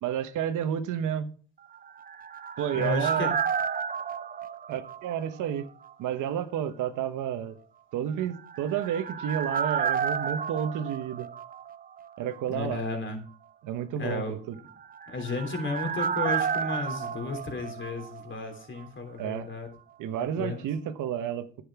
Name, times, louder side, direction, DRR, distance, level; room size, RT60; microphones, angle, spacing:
voice 1, 0.0-1.3 2.6-3.3 4.7-5.7 6.0-7.6 7.9-11.3 12.2-12.8 13.6-14.6 19.2-19.5 20.0-21.5, right 9 dB, 85° right, 1.1 m, -31 dB
sound 1, 1.7-5.6 5.8-5.9 8.3-12.1 12.3-12.4 14.7-18.5 18.8-18.9, right 7 dB, 30° right, 0.5 m, -32 dB
voice 2, 2.7-3.3 12.5-13.2 14.0-14.3 15.1-19.7 20.4-20.6, left 3 dB, 40° left, 3.3 m, -33 dB
10.5 x 7.8 x 4.7 m
cardioid pair, 90°, 30 cm